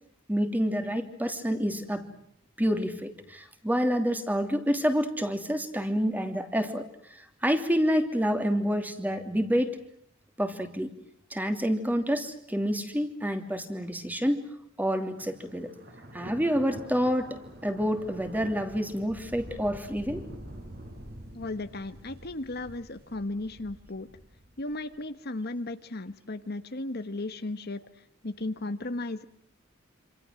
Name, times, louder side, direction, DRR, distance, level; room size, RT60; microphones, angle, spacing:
voice 1, 0.3-2.0 2.6-9.8 10.4-10.9 11.3-14.5 14.8-15.7 16.1-20.3, equal, 10° right, 7 dB, 2.9 m, -28 dB
Thunder, 15.1-25.0, right 1 dB, 50° right, 5.8 m, -46 dB
voice 2, 21.3-24.1 24.6-27.8 28.2-29.2, left 2 dB, 50° left, 10 dB, 1.3 m, -35 dB
27.5 x 27.0 x 7.7 m, 0.67 s
head